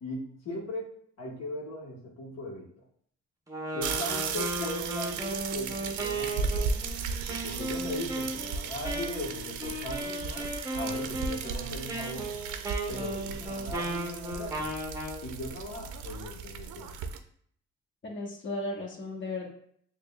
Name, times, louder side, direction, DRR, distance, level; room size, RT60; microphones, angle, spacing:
voice 1, 0.0-2.8 3.7-6.7 7.3-12.3 12.9-14.7 15.2-17.0, left 1 dB, 55° left, -3 dB, 1.1 m, -39 dB
Wind instrument woodwind instrument, 3.5-15.2, right 1 dB, 10° right, 0.7 m, -36 dB
sound 1, 3.8-17.2, right 5 dB, 80° right, 0.5 m, -36 dB
voice 2, 18.0-19.5, left 2 dB, 40° left, -1 dB, 1.2 m, -35 dB
6.5 x 2.2 x 2.2 m, 0.63 s
cardioid pair, 90°, 30 cm